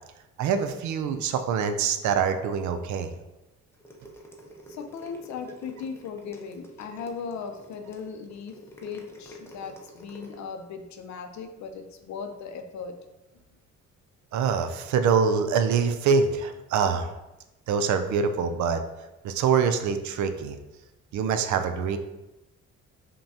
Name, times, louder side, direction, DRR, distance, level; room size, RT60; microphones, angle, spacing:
voice 1, 0.4-3.1 14.3-17.1 17.7-18.8 19.2-20.6 21.1-22.0, right 6 dB, 70° right, 8 dB, 0.5 m, -24 dB
sound 1, 3.7-10.4, equal, 10° left, 0.6 m, -47 dB
voice 2, 4.7-13.0, left 6 dB, 65° left, 6 dB, 0.5 m, -38 dB
5.4 x 2.2 x 2.7 m, 0.99 s
cardioid pair, 90°, 30 cm